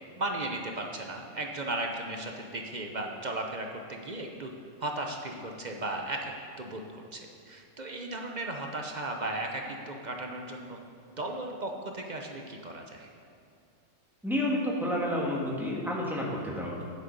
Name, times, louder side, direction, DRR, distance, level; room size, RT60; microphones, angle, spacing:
voice 1, 0.1-4.5 4.8-6.3 6.6-10.8 11.2-13.1, right 2 dB, 40° right, 2 dB, 0.8 m, -36 dB
voice 2, 14.2-16.8, left 1 dB, ahead, -4 dB, 1.6 m, -30 dB
9.9 x 7.7 x 5.3 m, 2.3 s
omnidirectional pair, 1.4 m